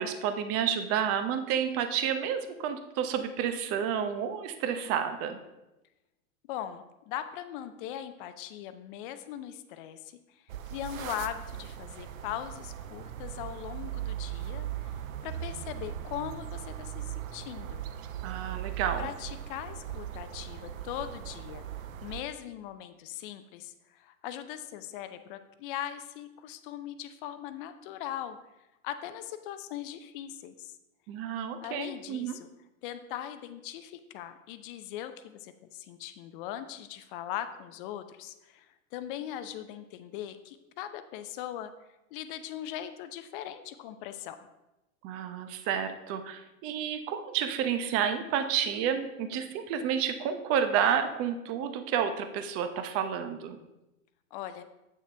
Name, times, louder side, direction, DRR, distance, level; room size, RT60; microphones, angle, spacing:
voice 1, 0.0-5.4 18.2-19.1 31.1-32.4 45.0-53.6, right 8 dB, 35° right, 9 dB, 0.8 m, -30 dB
voice 2, 6.5-10.4 10.7-17.8 19.0-21.7 22.0-28.4 28.8-30.8 31.6-32.5 32.8-41.7 42.1-44.4 54.3-54.6, left 11 dB, 40° left, 10 dB, 0.5 m, -40 dB
sound 1, 10.5-22.2, right 11 dB, 65° right, 0.7 m, -39 dB
8.4 x 6.4 x 3.3 m, 0.97 s
hypercardioid pair, 115°, 42 cm